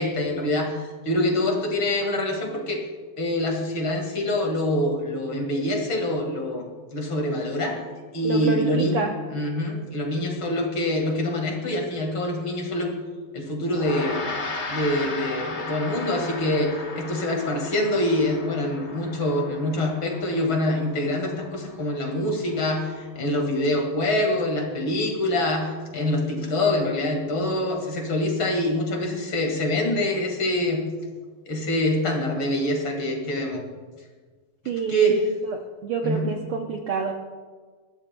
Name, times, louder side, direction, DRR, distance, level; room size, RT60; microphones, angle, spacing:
voice 1, 0.0-2.8 3.2-6.7 6.9-7.8 8.1-9.0 9.3-12.9 13.3-14.2 14.7-30.8 31.5-33.6 34.9-35.2 36.0-36.3, left 1 dB, 45° left, 2 dB, 2.3 m, -25 dB
voice 2, 8.2-9.1 34.7-35.3 35.8-37.1, right 5 dB, 70° right, 2 dB, 1.3 m, -28 dB
Gong, 13.7-23.3, left 3 dB, 80° left, 0.6 m, -36 dB
20.5 x 14.5 x 2.2 m, 1.5 s
omnidirectional pair, 3.5 m